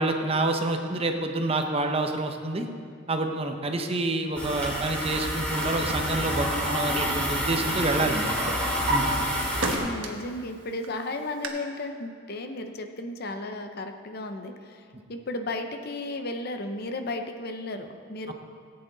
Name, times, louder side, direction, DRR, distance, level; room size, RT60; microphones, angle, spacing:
voice 1, 0.0-2.7 3.1-8.4 8.9-9.1 18.3-18.4, right 2 dB, 30° right, 4 dB, 0.9 m, -27 dB
sound 1, 4.3-9.8, equal, 5° left, 2.9 m, -28 dB
Drawer open or close, 5.3-7.7 8.0-10.4 10.8-11.5, right 2 dB, 85° right, 1.3 m, -34 dB
voice 2, 9.7-18.3, left 2 dB, 55° left, 6 dB, 0.8 m, -34 dB
18.0 x 8.7 x 4.0 m, 2.3 s
head